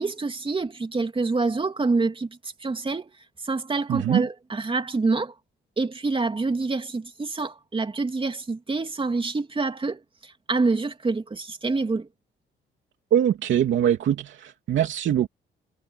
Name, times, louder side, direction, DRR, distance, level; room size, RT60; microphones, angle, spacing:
voice 1, 0.0-3.1 3.4-5.3 5.8-12.1, right 3 dB, 25° right, 2.8 m, -27 dB
voice 2, 3.9-4.2 13.1-15.3, right 10 dB, 70° right, 2.9 m, -22 dB
cardioid pair, 90°, 20 cm